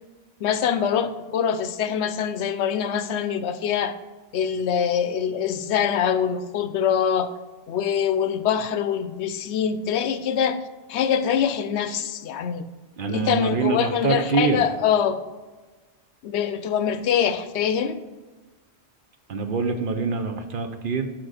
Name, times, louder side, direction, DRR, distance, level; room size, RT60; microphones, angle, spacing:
voice 1, 0.4-3.9 4.3-7.3 7.7-10.6 10.9-12.6 13.1-15.2 16.2-18.0, left 8 dB, 80° left, 11 dB, 0.8 m, -24 dB
voice 2, 13.0-14.6 19.3-21.1, right 5 dB, 55° right, 7 dB, 0.8 m, -25 dB
6.3 x 5.9 x 4.9 m, 1.3 s
omnidirectional pair, 1.1 m